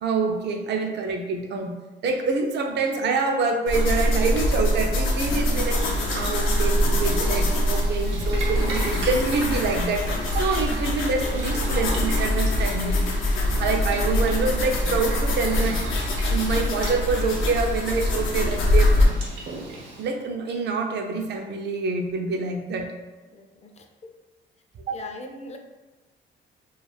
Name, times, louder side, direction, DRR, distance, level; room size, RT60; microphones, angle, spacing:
voice 1, 0.0-1.8 2.0-5.8 6.1-10.0 10.3-13.0 13.6-15.8 16.2-18.9 20.0-22.9 24.9-25.0, right 4 dB, 60° right, 3 dB, 0.5 m, -26 dB
sound 1, 3.7-19.1, left 1 dB, 85° left, 0.6 m, -23 dB
Boiling, 5.5-20.1, right 3 dB, 80° right, 0.9 m, -37 dB
voice 2, 23.3-23.9 24.9-25.6, left 2 dB, 35° left, 4 dB, 0.4 m, -40 dB
2.3 x 2.3 x 3.2 m, 1.2 s
cardioid pair, 90°, 20 cm